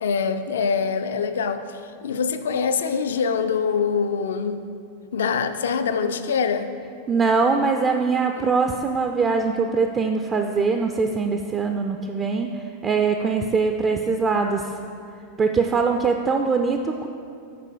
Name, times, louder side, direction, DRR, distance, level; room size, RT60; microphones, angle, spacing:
voice 1, 0.0-4.6 5.1-6.7 8.4-8.5, left 6 dB, 65° left, 10 dB, 0.3 m, -24 dB
voice 2, 7.1-14.7 15.4-17.1, right 4 dB, 25° right, 4 dB, 0.3 m, -22 dB
6.7 x 4.8 x 4.9 m, 2.4 s
figure-of-eight pair, 90°, 0 cm